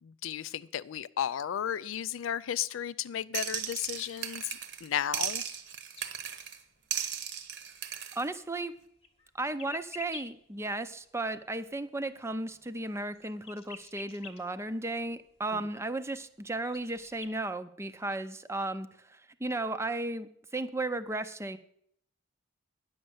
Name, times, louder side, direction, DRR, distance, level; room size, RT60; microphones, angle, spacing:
voice 1, 0.0-5.4 15.5-15.6, left 9 dB, 80° left, 17 dB, 0.4 m, -34 dB
sound 1, 3.3-4.9 5.1-6.6 6.9-8.2, right 9 dB, 60° right, 1.0 m, -36 dB
sound 2, 6.0-6.2 6.4-6.7 6.9-8.0 8.4-8.5 8.8-10.3 10.7-11.4 11.6-14.4 14.7-14.8 15.3-15.4 16.1-16.2 16.5-17.3, left 6 dB, 30° left, 1.0 m, -49 dB
voice 2, 8.2-8.7 9.4-21.6, right 2 dB, 15° right, 11 dB, 0.5 m, -35 dB
10.0 x 6.5 x 7.8 m, 0.68 s
head